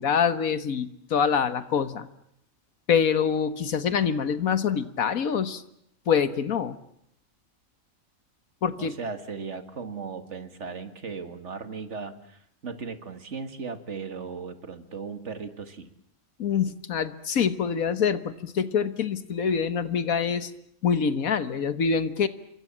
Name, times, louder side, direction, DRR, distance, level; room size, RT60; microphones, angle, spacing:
voice 1, 0.0-2.1 2.9-5.6 6.1-6.8 8.6-8.9 16.4-20.5 20.8-22.3, left 7 dB, 85° left, 13 dB, 1.7 m, -25 dB
voice 2, 8.8-15.9, right 5 dB, 55° right, 9 dB, 2.2 m, -37 dB
27.5 x 24.0 x 7.4 m, 0.74 s
omnidirectional pair, 1.4 m